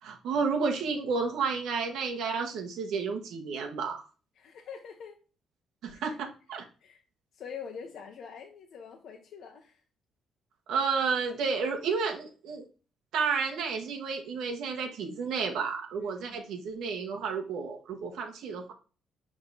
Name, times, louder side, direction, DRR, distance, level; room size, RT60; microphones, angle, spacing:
voice 1, 0.0-4.1 5.8-6.6 10.7-12.7 13.1-18.7, right 5 dB, 80° right, 3 dB, 1.4 m, -31 dB
voice 2, 4.4-5.2 5.9-6.2 6.8-7.0 7.3-9.8 16.0-16.4, left 6 dB, 70° left, 2 dB, 0.9 m, -45 dB
6.2 x 3.8 x 4.1 m, 0.36 s
cardioid pair, 90°, 0 cm